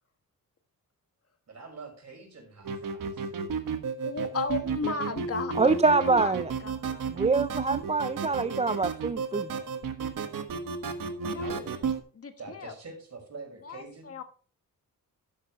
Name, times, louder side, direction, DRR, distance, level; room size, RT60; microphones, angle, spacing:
voice 1, 1.5-3.3 11.3-12.0 12.4-14.3, right 3 dB, 50° right, 2 dB, 5.7 m, -45 dB
sound 1, 2.6-12.0, right 5 dB, 65° right, 1.5 m, -32 dB
voice 2, 4.0-6.3 6.6-7.3 11.2-11.5 12.1-12.7 13.6-14.2, left 4 dB, 40° left, 7 dB, 1.3 m, -35 dB
voice 3, 5.6-6.5 7.1-9.5, right 4 dB, 20° right, 13 dB, 0.4 m, -25 dB
12.0 x 10.5 x 3.1 m, 0.41 s
cardioid pair, 105°, 35 cm